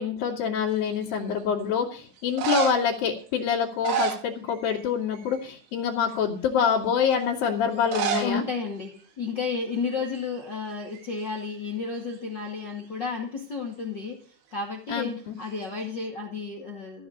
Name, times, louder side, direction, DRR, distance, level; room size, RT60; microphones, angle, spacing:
voice 1, 0.0-8.4 14.9-15.3, left 7 dB, 55° left, -4 dB, 3.2 m, -26 dB
sound 1, 0.7-1.2 2.2-3.0 3.6-4.9 5.1-5.5 6.1-6.2 7.8-8.4 8.6-8.7 8.9-9.0 9.8-10.0 10.3-11.5 15.4-16.1, right 8 dB, 80° right, 4.4 m, -31 dB
voice 2, 8.2-17.1, left 4 dB, 80° left, 1 dB, 1.0 m, -32 dB
15.0 x 6.2 x 8.6 m, 0.41 s
omnidirectional pair, 5.6 m